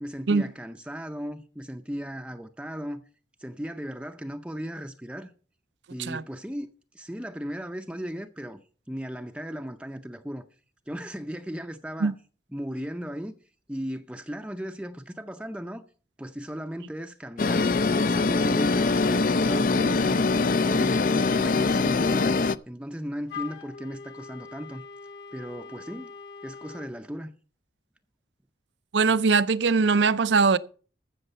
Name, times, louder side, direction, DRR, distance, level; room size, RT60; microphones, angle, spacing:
voice 1, 0.0-3.0 3.4-5.3 5.9-8.6 8.9-10.5 10.9-12.1 12.5-13.3 13.7-15.8 16.2-17.7 18.0-20.3 20.6-22.4 22.7-24.8 25.3-26.1 26.4-27.3, equal, 5° right, 0.5 m, -36 dB
sound 1, 17.4-22.6, left 3 dB, 50° left, 0.4 m, -23 dB
Wind instrument woodwind instrument, 23.3-26.9, left 6 dB, 70° left, 2.4 m, -42 dB
voice 2, 28.9-30.6, right 4 dB, 80° right, 0.6 m, -21 dB
14.5 x 6.5 x 5.5 m
head